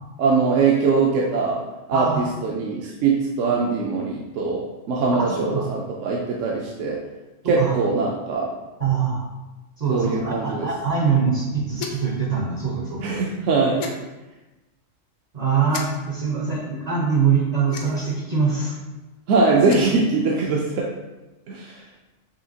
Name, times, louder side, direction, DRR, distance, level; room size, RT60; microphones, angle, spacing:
voice 1, 0.2-1.6 1.9-7.0 7.4-8.5 9.9-10.7 13.0-13.9 19.3-20.9 21.5-21.8, right 4 dB, 75° right, -3 dB, 0.9 m, -22 dB
voice 2, 5.1-5.7 7.4-7.7 8.8-9.2 9.8-13.2 15.3-18.7, right 5 dB, 45° right, -2 dB, 0.5 m, -23 dB
sound 1, 11.7-12.2 13.8-14.0 15.7-15.8 17.7-18.1 19.5-20.0, left 5 dB, 70° left, 0.8 m, -34 dB
5.6 x 2.8 x 2.7 m, 1.1 s
omnidirectional pair, 1.3 m